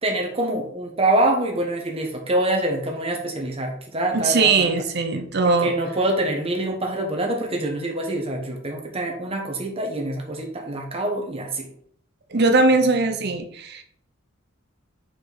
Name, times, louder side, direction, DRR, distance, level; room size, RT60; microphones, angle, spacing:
voice 1, 0.0-4.7 5.4-11.7, right 1 dB, 30° right, 2 dB, 1.1 m, -25 dB
voice 2, 4.1-5.7 12.3-13.8, right 3 dB, 50° right, 6 dB, 0.8 m, -20 dB
5.0 x 4.7 x 4.0 m, 0.66 s
head